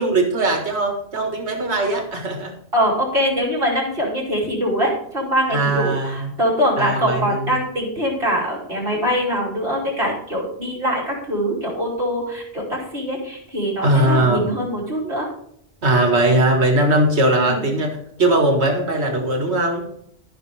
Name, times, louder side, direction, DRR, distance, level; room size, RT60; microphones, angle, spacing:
voice 1, 0.0-2.5 5.5-6.3 6.8-7.5 13.8-14.4 15.8-19.9, right 1 dB, 80° right, 3 dB, 2.0 m, -19 dB
voice 2, 2.7-15.3 17.4-17.7, equal, 60° right, -4 dB, 3.2 m, -23 dB
13.5 x 5.9 x 3.4 m, 0.71 s
omnidirectional pair, 1.1 m